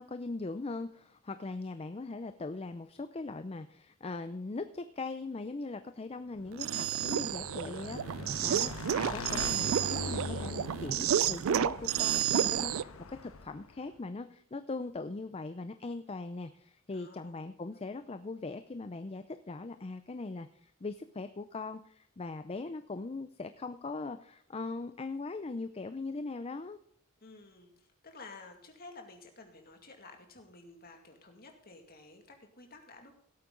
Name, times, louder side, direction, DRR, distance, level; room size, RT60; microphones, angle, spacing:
voice 1, 0.0-26.8, left 3 dB, 25° left, 10 dB, 0.5 m, -40 dB
Motorcycle / Engine, 6.4-13.8, left 3 dB, 70° left, 1.1 m, -42 dB
sound 1, 6.5-12.8, right 10 dB, 70° right, 0.4 m, -31 dB
voice 2, 8.5-8.9 16.9-17.4 17.7-17.9 27.2-33.1, left 3 dB, 45° left, 4 dB, 2.2 m, -52 dB
17.0 x 8.6 x 3.9 m, 0.68 s
head